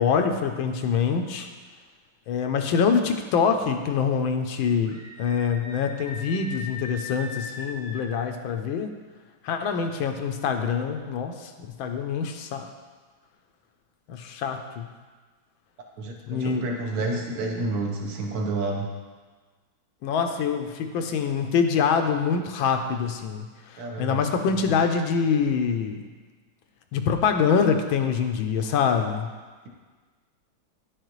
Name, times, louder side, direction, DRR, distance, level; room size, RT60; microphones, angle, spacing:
voice 1, 0.0-1.5 2.3-8.9 9.4-12.7 14.1-14.9 16.3-16.6 20.0-26.0 26.9-29.3, left 6 dB, 80° left, 6 dB, 1.4 m, -25 dB
Screaming, 4.8-8.2, left 2 dB, 25° right, 1.1 m, -39 dB
voice 2, 16.0-18.9 23.8-24.2, right 2 dB, 55° right, 1 dB, 1.4 m, -29 dB
11.0 x 6.6 x 3.1 m, 1.4 s
omnidirectional pair, 2.2 m